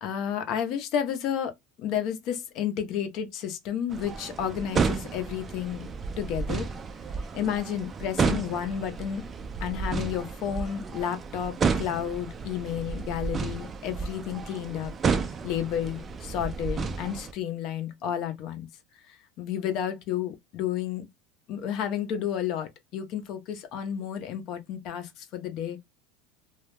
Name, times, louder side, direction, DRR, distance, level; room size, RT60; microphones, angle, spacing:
voice 1, 0.0-1.5 1.8-5.9 6.2-6.7 7.3-9.2 9.6-14.9 15.2-18.7 19.1-21.1 21.5-25.8, left 9 dB, 50° left, 0.6 m, -31 dB
sound 1, 3.9-17.3, right 5 dB, 25° right, 0.3 m, -32 dB
2.3 x 2.1 x 3.1 m
supercardioid pair, 135°, 0 cm